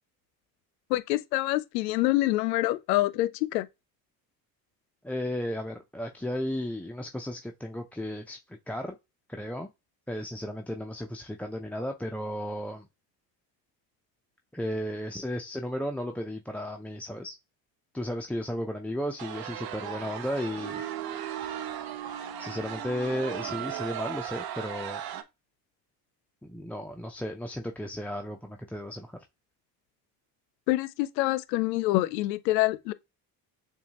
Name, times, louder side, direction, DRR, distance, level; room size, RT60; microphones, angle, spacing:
voice 1, 0.9-3.7 30.7-32.9, left 17 dB, 85° left, 0.6 m, -26 dB
voice 2, 5.0-9.0 9.3-9.7 10.1-12.9 14.5-17.4 17.9-20.8 22.4-25.0 26.4-29.2, equal, 5° left, 0.4 m, -34 dB
sound 1, 19.2-25.2, right 10 dB, 45° right, 0.8 m, -36 dB
6.9 x 2.4 x 2.8 m
hypercardioid pair, 65°, 50 cm